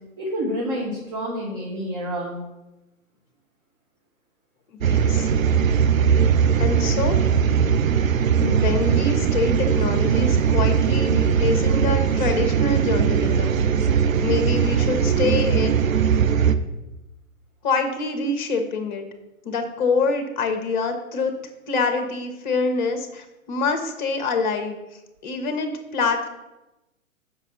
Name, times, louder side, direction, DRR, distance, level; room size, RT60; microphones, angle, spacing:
voice 1, 0.2-2.4, equal, 30° right, -3 dB, 1.4 m, -28 dB
sound 1, 4.8-16.5, right 7 dB, 70° right, 0.6 m, -20 dB
voice 2, 4.9-5.3 6.6-7.2 8.4-13.5 13.8-14.0 14.2-16.0 17.6-19.1 19.4-21.3 21.7-24.8 25.2-26.3, left 4 dB, 35° left, 6 dB, 1.0 m, -25 dB
sound 2, 7.8-13.7, right 4 dB, 45° right, 1.1 m, -37 dB
7.4 x 5.5 x 4.1 m, 0.98 s
figure-of-eight pair, 120°, 42 cm